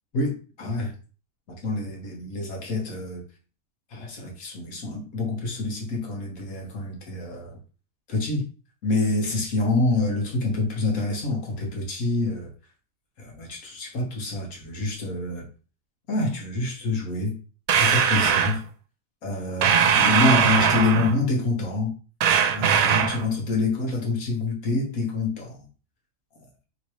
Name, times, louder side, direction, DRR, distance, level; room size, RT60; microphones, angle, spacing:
voice 1, 0.1-0.9 1.6-3.2 3.9-7.6 8.1-8.5 8.8-12.5 13.2-15.5 16.1-17.4 17.8-18.6 19.2-22.0 22.5-25.7, left 2 dB, 70° left, 0 dB, 1.8 m, -26 dB
sound 1, 17.7-18.6 19.6-21.2 22.2-23.3, right 7 dB, 75° right, 1.0 m, -20 dB
3.7 x 3.2 x 4.3 m, 0.36 s
omnidirectional pair, 1.5 m